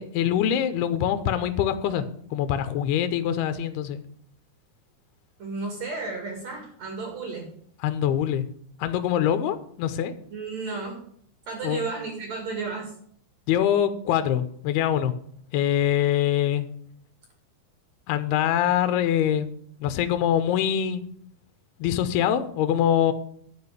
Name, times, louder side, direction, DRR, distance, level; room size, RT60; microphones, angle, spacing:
voice 1, 0.0-2.1 2.3-4.0 7.8-8.5 8.8-10.1 11.6-11.8 13.5-15.1 15.5-16.7 18.1-19.5 19.8-21.0 21.8-23.1, left 10 dB, 85° left, 11 dB, 2.8 m, -24 dB
voice 2, 5.4-7.5 10.3-11.0 11.5-12.9, right 4 dB, 50° right, 1 dB, 3.1 m, -33 dB
11.5 x 4.9 x 8.1 m, 0.63 s
omnidirectional pair, 4.6 m